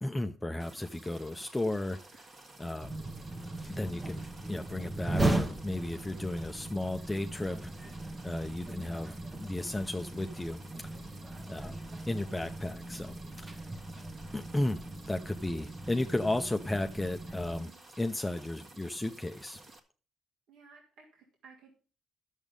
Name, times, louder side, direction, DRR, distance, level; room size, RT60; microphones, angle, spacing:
voice 1, 0.0-2.3 2.6-3.0 3.7-7.7 8.2-11.0 11.5-11.8 12.1-13.2 13.4-13.7 14.3-17.7 18.0-19.6, left 1 dB, 10° left, 6 dB, 0.6 m, -34 dB
sound 1, 0.6-19.8, right 2 dB, 45° right, 1.7 m, -54 dB
sound 2, 2.8-17.6, right 2 dB, 20° right, 1.1 m, -38 dB
voice 2, 8.4-8.8 17.4-17.8 20.5-21.8, right 5 dB, 80° right, -1 dB, 2.8 m, -57 dB
11.0 x 7.3 x 5.2 m, 0.37 s
cardioid pair, 90°, 0 cm